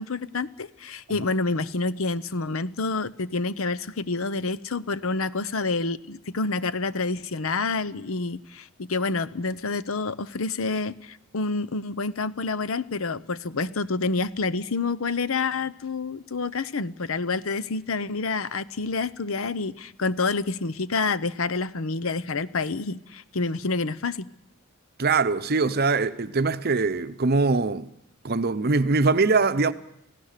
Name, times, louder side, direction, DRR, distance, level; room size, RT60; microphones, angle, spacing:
voice 1, 0.0-24.3, left 3 dB, 75° left, 0.8 m, -28 dB
voice 2, 25.0-27.9 28.2-29.7, right 3 dB, 45° right, 0.8 m, -22 dB
30.0 x 16.0 x 6.7 m
head